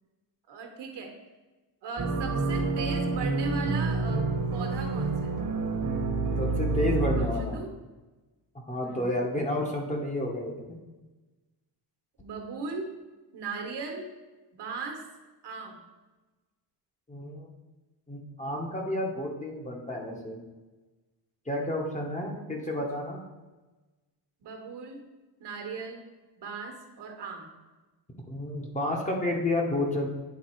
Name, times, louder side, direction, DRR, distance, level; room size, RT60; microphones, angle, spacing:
voice 1, 0.5-1.1 1.8-5.4 7.2-7.7 8.8-9.1 12.2-12.9 13.3-14.1 14.5-15.0 15.4-15.8 22.2-22.8 24.4-25.0 25.4-26.0 26.4-27.5, right 4 dB, 70° right, 3 dB, 1.3 m, -38 dB
sound 1, 2.0-7.3, right 3 dB, 45° right, 1.1 m, -28 dB
voice 2, 6.4-7.6 8.7-10.6 17.1-17.5 18.1-20.4 21.5-23.2 28.3-30.1, left 1 dB, 15° left, 0 dB, 0.9 m, -30 dB
9.5 x 3.6 x 4.4 m, 1.2 s
cardioid pair, 155°, 43 cm